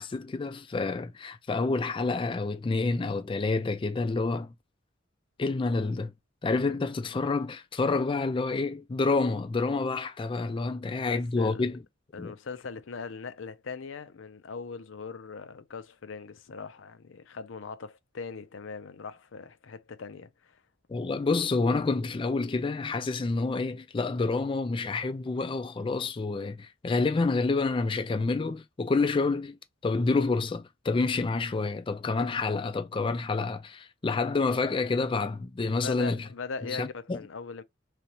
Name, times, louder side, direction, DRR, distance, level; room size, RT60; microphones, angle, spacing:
voice 1, 0.0-4.5 5.4-6.1 6.4-11.8 12.2-12.3 20.9-36.3 36.7-37.2, left 3 dB, 25° left, 0.3 m, -28 dB
voice 2, 11.0-11.6 12.1-20.6 35.8-37.6, left 4 dB, 85° left, 0.6 m, -40 dB
3.9 x 3.4 x 2.9 m
head